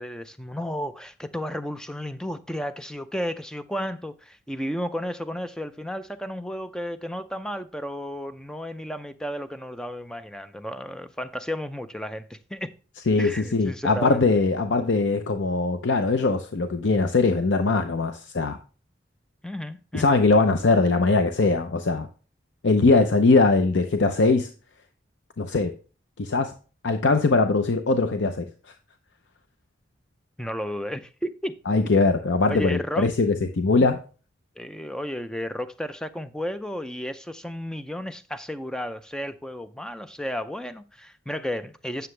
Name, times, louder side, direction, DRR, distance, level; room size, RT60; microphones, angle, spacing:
voice 1, 0.0-12.7 13.2-14.3 19.4-20.2 30.4-31.6 32.5-33.1 34.6-42.1, equal, 5° left, 0.4 m, -33 dB
voice 2, 13.1-18.6 19.9-22.1 22.6-24.5 25.4-25.7 26.2-26.5 26.8-28.5 31.7-34.0, left 3 dB, 80° left, 0.6 m, -21 dB
9.4 x 6.8 x 3.2 m
head